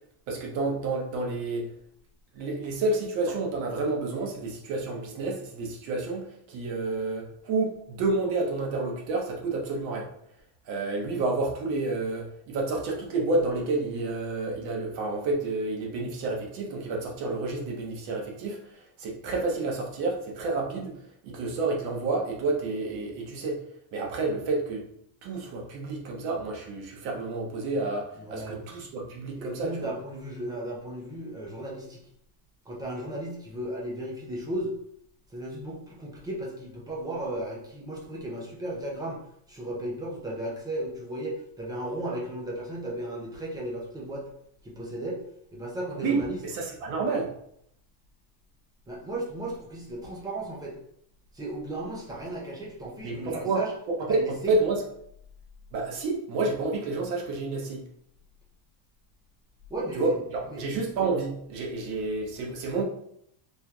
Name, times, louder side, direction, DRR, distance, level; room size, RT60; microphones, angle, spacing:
voice 1, 0.3-1.7 2.3-10.1 10.7-20.9 21.2-23.6 23.9-24.8 25.2-29.9 46.0-47.3 53.0-53.6 53.9-54.8 55.7-57.9 59.9-62.8, right 3 dB, 60° right, 0 dB, 1.2 m, -29 dB
voice 2, 28.2-28.7 29.3-32.0 32.7-34.7 35.3-39.2 39.5-44.3 44.6-45.2 45.5-46.4 48.9-50.8 51.3-53.7 54.1-54.6 59.7-60.2 60.5-60.6, right 1 dB, 10° right, -3 dB, 0.4 m, -35 dB
4.4 x 3.3 x 2.3 m, 0.71 s
cardioid pair, 165°, 48 cm